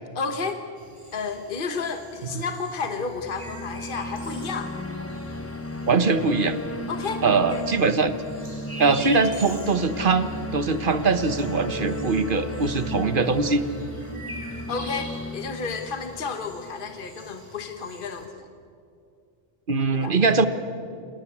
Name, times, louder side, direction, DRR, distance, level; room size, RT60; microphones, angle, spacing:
voice 1, 0.1-0.6 1.1-4.7 6.9-7.6 14.7-18.5 19.9-20.1, left 4 dB, 55° left, 7 dB, 1.4 m, -32 dB
sound 1, 0.8-18.3, right 1 dB, 30° right, 3.5 m, -45 dB
sound 2, 3.0-17.2, left 1 dB, 15° left, 0.9 m, -35 dB
voice 2, 5.9-6.6 7.2-8.1 8.8-13.6 19.7-20.5, right 4 dB, 55° right, 11 dB, 1.3 m, -22 dB
27.0 x 18.5 x 8.5 m, 2.4 s
omnidirectional pair, 1.0 m